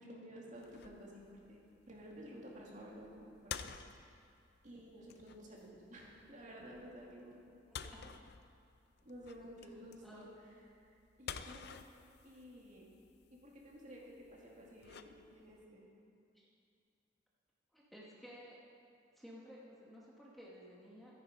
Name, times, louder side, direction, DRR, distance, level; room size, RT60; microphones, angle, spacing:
voice 1, 0.0-1.6 1.9-4.2 4.6-7.4 9.0-10.6 10.8-11.8 12.2-12.9 13.3-15.9, equal, 40° right, -3 dB, 2.2 m, -53 dB
sound 1, 0.5-15.6, left 7 dB, 60° left, 0.5 m, -52 dB
voice 2, 7.8-8.1 10.0-10.5 16.3-16.5 17.7-18.6 19.2-21.2, equal, ahead, -5 dB, 1.3 m, -55 dB
13.5 x 9.6 x 5.2 m, 2.5 s
head